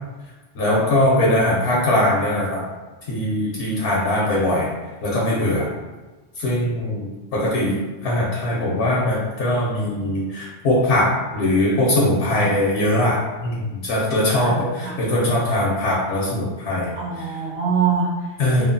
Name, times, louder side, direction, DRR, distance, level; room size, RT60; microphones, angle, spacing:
voice 1, 0.6-2.6 3.1-4.7 5.0-5.7 6.4-7.8 8.0-11.1 11.3-13.2 13.4-16.9 18.4-18.6, left 1 dB, 85° left, -4 dB, 0.9 m, -21 dB
voice 2, 14.4-15.0 16.9-18.6, right 5 dB, 60° right, -9 dB, 1.4 m, -25 dB
3.0 x 2.0 x 2.5 m, 1.2 s
omnidirectional pair, 1.2 m